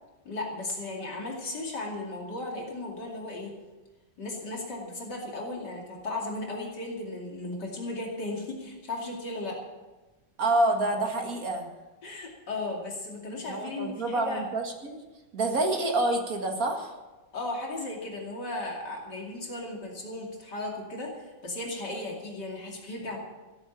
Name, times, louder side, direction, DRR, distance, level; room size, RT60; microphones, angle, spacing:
voice 1, 0.2-3.5 4.2-9.6 12.0-14.4 17.3-23.2, left 2 dB, 65° left, -1 dB, 3.1 m, -36 dB
voice 2, 10.4-11.7 13.5-15.0 15.3-17.0, right 2 dB, 50° right, 3 dB, 2.3 m, -27 dB
15.5 x 9.2 x 7.1 m, 1.2 s
omnidirectional pair, 2.0 m